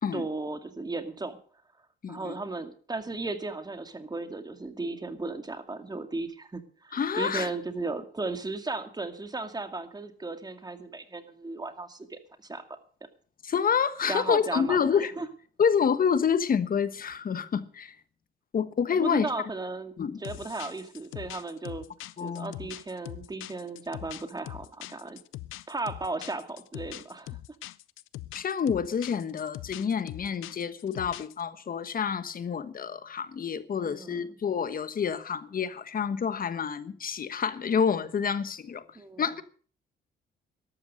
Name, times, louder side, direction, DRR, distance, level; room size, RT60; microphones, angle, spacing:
voice 1, 0.1-1.4 2.1-12.6 14.1-15.3 18.9-19.9 20.2-21.9 22.2-25.2 25.7-27.4 33.8-34.4 39.0-39.3, right 3 dB, 20° right, 2.2 m, -35 dB
voice 2, 2.0-2.4 6.9-7.5 13.4-15.1 15.6-18.0 18.5-19.3 20.0-20.2 22.2-22.6 28.3-38.8 39.2-39.4, left 7 dB, 45° left, 1.3 m, -28 dB
sound 1, 20.2-31.4, left 16 dB, 90° left, 0.6 m, -42 dB
13.0 x 12.5 x 6.3 m
cardioid pair, 90°, 20 cm